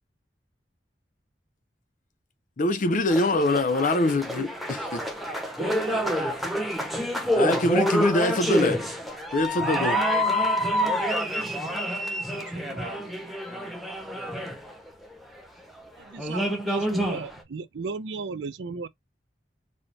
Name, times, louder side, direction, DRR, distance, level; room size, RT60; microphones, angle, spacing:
voice 1, 2.6-4.5 4.9-5.0 7.3-8.8 9.3-10.0, left 2 dB, 50° left, 0.6 m, -23 dB
sound 1, 3.1-15.1 15.8-15.9 16.2-17.4, equal, ahead, 0.7 m, -27 dB
voice 2, 5.5-7.1 12.4-13.4, right 3 dB, 75° right, 1.3 m, -41 dB
voice 3, 16.0-18.9, right 4 dB, 90° right, 0.5 m, -35 dB
4.2 x 2.2 x 3.2 m
head